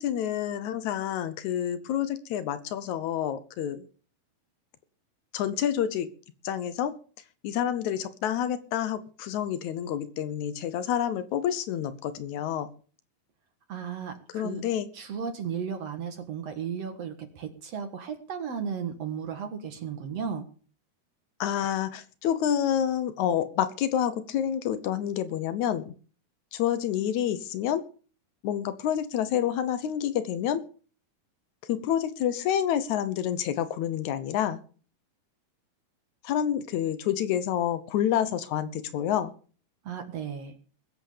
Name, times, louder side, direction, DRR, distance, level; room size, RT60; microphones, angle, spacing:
voice 1, 0.0-3.9 5.3-6.1 6.4-7.0 7.4-12.7 14.3-14.9 21.4-25.9 26.5-27.8 28.4-30.6 31.6-34.6 36.2-39.3, left 10 dB, 70° left, 14 dB, 2.0 m, -28 dB
voice 2, 13.7-14.6 14.9-20.5 39.8-40.5, right 7 dB, 55° right, 7 dB, 2.3 m, -35 dB
21.0 x 8.0 x 5.1 m, 0.40 s
omnidirectional pair, 4.1 m